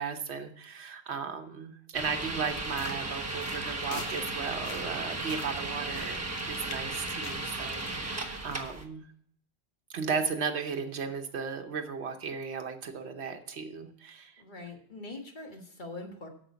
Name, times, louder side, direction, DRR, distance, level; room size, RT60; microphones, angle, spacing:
voice 1, 0.0-9.0 9.9-14.4, right 5 dB, 90° right, 5 dB, 1.2 m, -35 dB
sound 1, 1.9-8.8, right 2 dB, 15° right, 1.2 m, -35 dB
sound 2, 2.6-8.7, left 5 dB, 70° left, 1.1 m, -47 dB
voice 2, 14.4-16.3, left 2 dB, 50° left, 3 dB, 1.6 m, -43 dB
8.9 x 7.1 x 5.7 m, 0.64 s
omnidirectional pair, 1.1 m